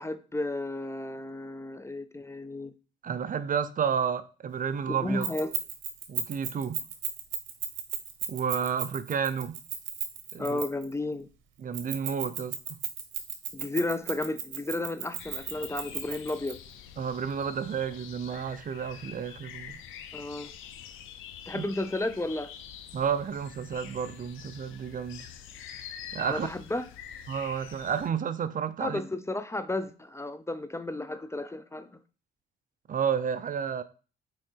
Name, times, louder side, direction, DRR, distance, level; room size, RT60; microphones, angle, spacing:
voice 1, 0.0-2.7 4.9-5.5 10.4-11.3 13.5-16.6 20.1-20.5 21.5-22.5 26.2-26.8 28.8-31.9, left 2 dB, 15° left, 0.5 m, -33 dB
voice 2, 3.0-5.3 6.1-6.8 8.3-9.6 10.3-10.6 11.6-12.8 17.0-19.8 21.5-21.6 22.9-25.3 26.1-26.5 27.3-29.0 32.9-33.8, right 7 dB, 45° right, 0.6 m, -31 dB
Keys jangling, 5.2-10.9 11.7-16.5, right 9 dB, 75° right, 1.3 m, -34 dB
sound 1, 15.2-28.1, left 9 dB, 85° left, 0.7 m, -46 dB
6.3 x 4.6 x 4.5 m
cardioid pair, 90°, 20 cm